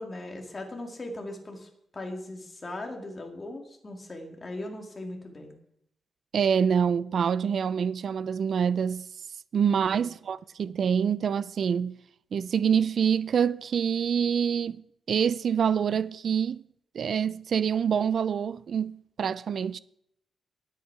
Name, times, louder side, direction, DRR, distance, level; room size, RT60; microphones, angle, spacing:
voice 1, 0.0-5.5 9.8-10.0, left 1 dB, 25° left, 2.2 m, -39 dB
voice 2, 6.3-9.1 9.5-12.0 12.3-14.8 15.1-16.6 16.9-19.8, right 7 dB, 55° right, 0.4 m, -26 dB
20.5 x 8.3 x 4.8 m
wide cardioid pair, 165°, 0 cm